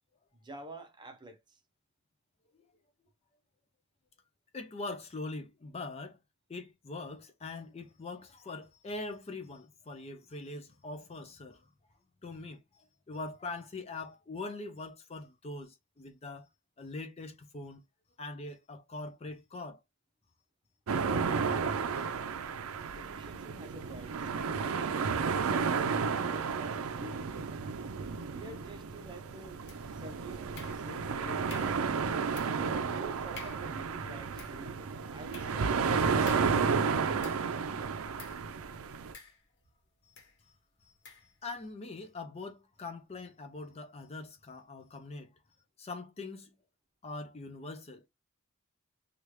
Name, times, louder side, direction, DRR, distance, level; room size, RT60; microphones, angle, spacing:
voice 1, 0.3-1.6 22.9-24.3 25.1-27.5 28.3-29.6 29.9-31.9 32.9-36.9, right 2 dB, 20° right, 0.7 m, -49 dB
voice 2, 4.5-6.2 6.5-11.7 12.2-16.5 16.8-17.8 18.2-19.8 40.0-40.1 40.8-40.9 41.4-45.3 45.8-46.5 47.0-48.1, left 3 dB, 30° left, 0.4 m, -42 dB
sound 1, 20.9-39.1, right 5 dB, 90° right, 0.5 m, -32 dB
sound 2, 29.7-30.1 30.5-31.1 31.5-31.9 32.3-32.7 33.0-33.1 33.3-33.8 34.2-37.6 38.2-38.5 39.1-39.7 40.1-40.4 41.0-41.3, left 5 dB, 55° left, 1.2 m, -51 dB
3.1 x 2.4 x 3.1 m
head